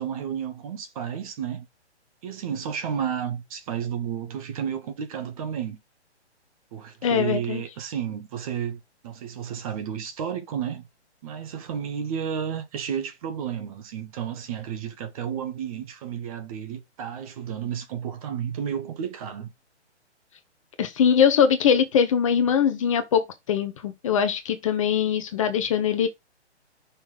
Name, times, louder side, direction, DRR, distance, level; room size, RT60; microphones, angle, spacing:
voice 1, 0.0-1.7 2.2-5.8 6.7-10.9 11.2-19.5, right 8 dB, 30° right, 1.1 m, -32 dB
voice 2, 7.0-7.6 20.8-23.2 23.5-26.1, left 7 dB, 30° left, 0.7 m, -22 dB
5.7 x 3.2 x 5.5 m
figure-of-eight pair, 135°, 35 cm